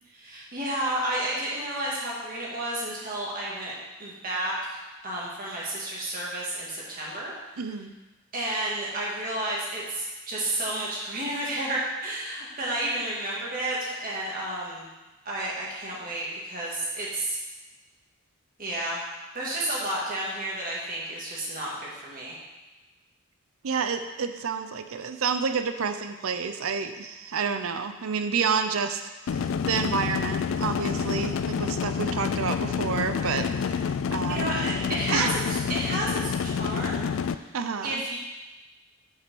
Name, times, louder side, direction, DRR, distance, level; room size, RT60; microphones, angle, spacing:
voice 1, 0.1-3.7 4.0-7.3 8.3-14.9 15.3-17.4 18.6-19.0 19.3-22.4 34.3-37.1 37.3-37.5 37.8-38.2, right 1 dB, 40° right, -5 dB, 2.0 m, -31 dB
voice 2, 7.6-7.9 23.6-34.5 35.1-35.3 37.5-38.0, right 5 dB, 75° right, 8 dB, 0.5 m, -29 dB
sound 1, 29.3-37.3, left 6 dB, 65° left, 0.3 m, -28 dB
6.0 x 5.6 x 6.2 m, 1.1 s
head